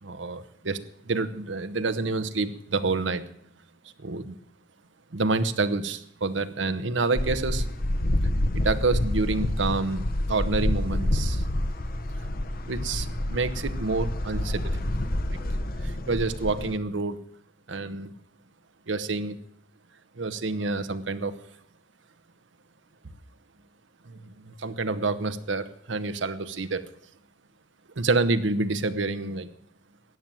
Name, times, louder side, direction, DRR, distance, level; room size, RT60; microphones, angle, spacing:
voice 1, 0.0-3.2 4.0-4.4 5.1-7.7 8.5-11.4 12.7-14.8 15.3-15.4 15.8-17.2 17.7-18.1 18.9-19.4 20.2-21.4 24.0-26.9 28.0-29.5, right 3 dB, 85° right, 11 dB, 0.9 m, -28 dB
sound 1, 7.1-16.8, left 1 dB, 50° left, 0.9 m, -28 dB
14.0 x 9.2 x 7.6 m, 0.69 s
head